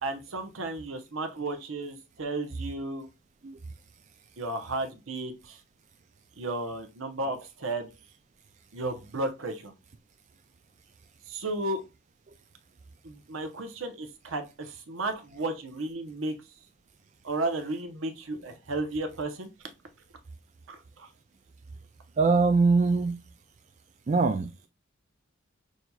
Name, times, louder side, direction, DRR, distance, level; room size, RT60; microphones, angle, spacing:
voice 1, 0.0-3.1 4.4-5.6 6.4-7.9 8.7-9.7 11.3-11.8 13.0-16.3 17.2-19.5 20.7-21.1, right 2 dB, 75° right, 0.8 m, -33 dB
voice 2, 22.2-23.2 24.1-24.5, right 4 dB, 35° right, 0.3 m, -22 dB
6.1 x 2.8 x 2.3 m
head